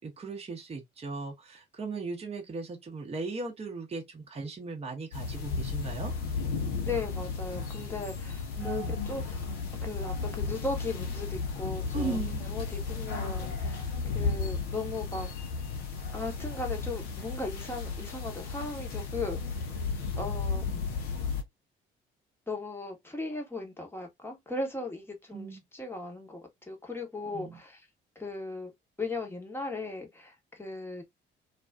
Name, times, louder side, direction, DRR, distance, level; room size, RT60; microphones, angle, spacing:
voice 1, 0.0-6.1 8.6-9.0 11.9-12.4 20.6-20.8 25.3-25.6 27.2-27.6, right 4 dB, 20° right, 0.7 m, -37 dB
sound 1, 5.1-21.4, left 4 dB, 70° left, 0.7 m, -34 dB
voice 2, 6.8-9.4 9.8-15.3 16.1-19.4 20.2-20.7 22.5-27.8 28.2-28.7 29.0-31.0, left 3 dB, 10° left, 0.9 m, -37 dB
2.4 x 2.3 x 2.3 m
figure-of-eight pair, 45°, 29 cm